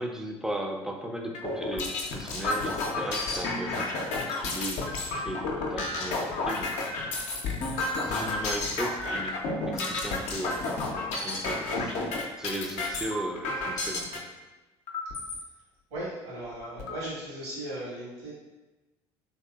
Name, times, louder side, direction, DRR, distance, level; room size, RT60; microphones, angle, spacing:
voice 1, 0.0-7.0 8.1-11.9 12.4-14.3, right 1 dB, 5° right, 2 dB, 0.4 m, -37 dB
sound 1, 1.3-14.2 14.9-15.4 16.0-16.1 16.4-17.0, left 2 dB, 60° left, 0.5 m, -31 dB
voice 2, 15.9-18.3, right 1 dB, 75° right, -7 dB, 1.4 m, -37 dB
3.0 x 2.8 x 2.3 m, 1.1 s
hypercardioid pair, 60°, 14 cm